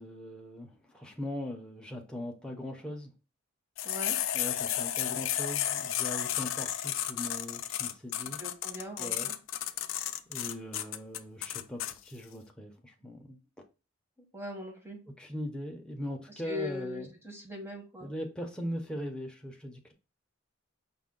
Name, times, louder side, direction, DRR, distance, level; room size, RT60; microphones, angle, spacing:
voice 1, 0.0-3.1 4.3-8.4 9.0-9.3 10.3-13.6 15.2-17.1 18.0-19.9, left 1 dB, 5° left, 0.6 m, -40 dB
sound 1, 3.8-11.9, left 11 dB, 70° left, 0.4 m, -33 dB
voice 2, 3.8-4.2 8.4-9.3 14.3-15.0 16.4-18.1, left 2 dB, 10° right, 1.0 m, -40 dB
5.3 x 2.2 x 3.7 m
head